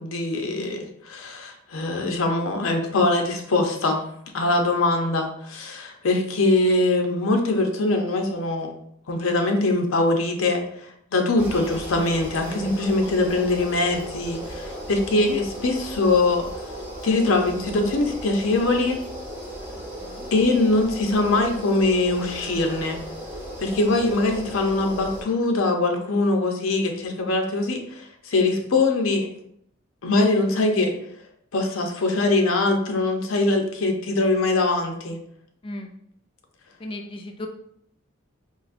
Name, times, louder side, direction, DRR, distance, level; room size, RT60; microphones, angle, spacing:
voice 1, 0.0-4.0 4.3-8.7 9.1-16.5 17.0-19.0 20.3-23.0 23.6-29.3 30.0-30.9 31.5-35.2, left 2 dB, 90° left, 3 dB, 0.6 m, -22 dB
sound 1, 11.4-25.2, equal, 10° right, 0.7 m, -36 dB
voice 2, 35.6-35.9 36.8-37.5, left 1 dB, 25° left, 5 dB, 0.3 m, -36 dB
3.9 x 2.5 x 2.4 m, 0.70 s
head